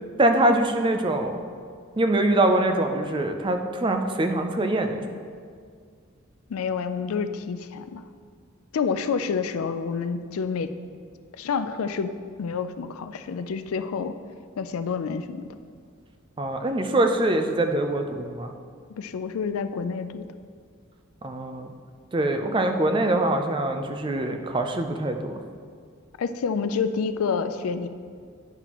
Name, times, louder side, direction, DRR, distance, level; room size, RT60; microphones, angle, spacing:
voice 1, 0.2-1.4 2.0-5.0 16.4-18.5 21.2-21.7 22.1-25.4, right 1 dB, 25° right, 6 dB, 0.4 m, -23 dB
voice 2, 6.5-8.0 8.7-10.7 11.3-12.1 12.4-14.2 14.6-15.5 18.9-20.3 26.2-27.9, left 5 dB, 90° left, 11 dB, 0.4 m, -28 dB
10.0 x 5.9 x 3.0 m, 2.1 s
head